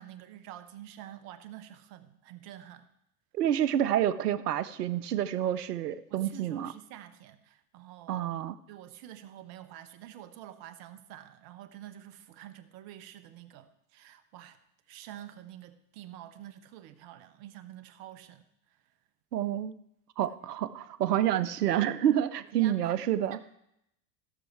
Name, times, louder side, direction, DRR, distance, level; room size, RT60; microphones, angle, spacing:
voice 1, 0.0-2.9 6.1-8.1 8.7-14.6 14.9-18.8 20.3-20.4 22.5-23.0 23.3-23.6, right 12 dB, 55° right, 11 dB, 1.1 m, -48 dB
voice 2, 3.3-6.7 8.1-8.5 19.3-19.8 20.2-23.4, right 11 dB, 85° right, 15 dB, 0.7 m, -28 dB
15.0 x 6.5 x 4.6 m, 0.79 s
hypercardioid pair, 85°, 46 cm